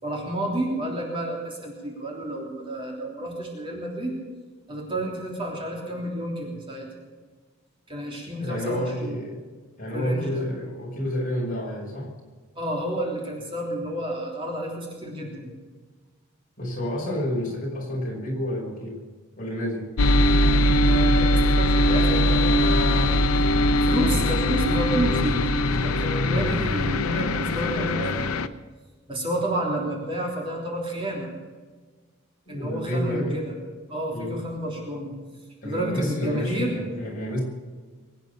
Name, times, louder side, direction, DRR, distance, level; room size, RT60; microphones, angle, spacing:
voice 1, 0.0-4.1 4.7-6.9 7.9-9.2 9.9-10.5 12.5-15.5 20.9-23.1 23.8-25.5 25.7-28.3 29.1-31.3 32.5-33.5 33.9-35.1 35.6-36.8, right 1 dB, 25° right, -2 dB, 3.4 m, -30 dB
voice 2, 8.4-9.4 9.8-12.1 16.6-19.0 19.4-19.9 26.3-26.5 32.5-33.4 34.1-34.4 35.6-37.4, equal, 40° left, -2 dB, 5.6 m, -29 dB
sound 1, 20.0-28.5, left 1 dB, 85° left, 0.8 m, -21 dB
22.5 x 9.4 x 6.9 m, 1.4 s
head